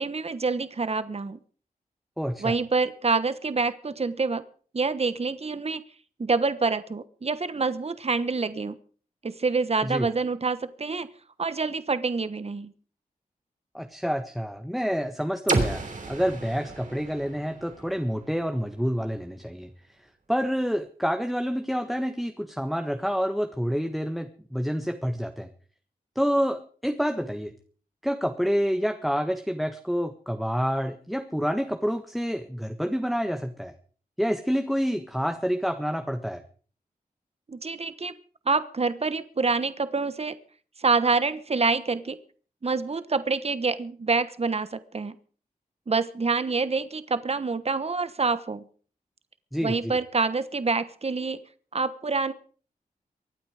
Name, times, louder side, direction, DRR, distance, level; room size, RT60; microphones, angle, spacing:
voice 1, 0.0-1.4 2.4-4.4 4.7-5.8 6.2-8.8 9.2-11.1 11.4-12.7 37.5-38.2 38.5-40.4 40.8-42.2 42.6-45.1 45.9-48.6 49.6-51.4 51.7-52.3, right 4 dB, 45° right, 13 dB, 1.2 m, -26 dB
voice 2, 2.2-2.6 9.8-10.1 13.7-19.7 20.3-25.5 26.1-27.5 28.0-33.7 34.2-36.4 49.5-50.0, equal, ahead, 6 dB, 1.5 m, -28 dB
sound 1, 15.5-19.3, right 3 dB, 60° right, 3.4 m, -32 dB
24.0 x 8.9 x 5.0 m, 0.43 s
cardioid pair, 55°, 15 cm